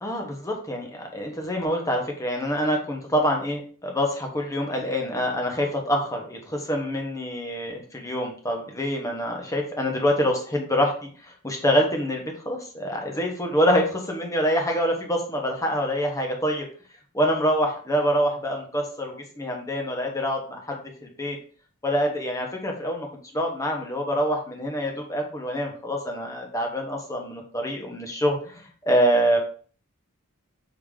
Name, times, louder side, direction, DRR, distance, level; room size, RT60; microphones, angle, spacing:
voice 1, 0.0-10.9 11.2-16.7 17.1-21.4 21.8-23.1 23.3-29.4, equal, 15° left, 1 dB, 1.0 m, -26 dB
5.0 x 2.9 x 3.6 m, 0.43 s
head